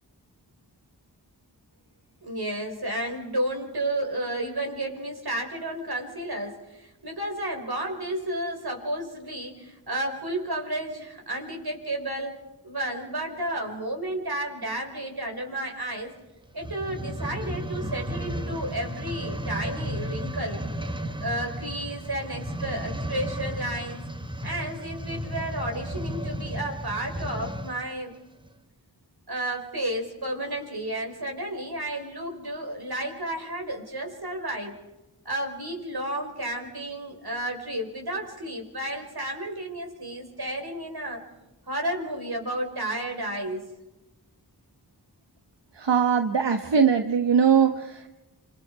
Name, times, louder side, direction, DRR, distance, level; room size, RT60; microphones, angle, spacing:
voice 1, 2.2-12.4 12.6-16.1 16.5-20.6 21.2-24.1 24.4-28.1 29.3-34.8 35.3-41.2 41.7-43.7, right 1 dB, 65° right, 3 dB, 5.3 m, -32 dB
sound 1, 16.5-27.8 28.5-28.6, equal, 10° right, 1.4 m, -34 dB
voice 2, 45.8-48.1, right 7 dB, 85° right, 6 dB, 1.3 m, -21 dB
28.0 x 27.0 x 4.8 m, 1.0 s
wide cardioid pair, 50°, 41 cm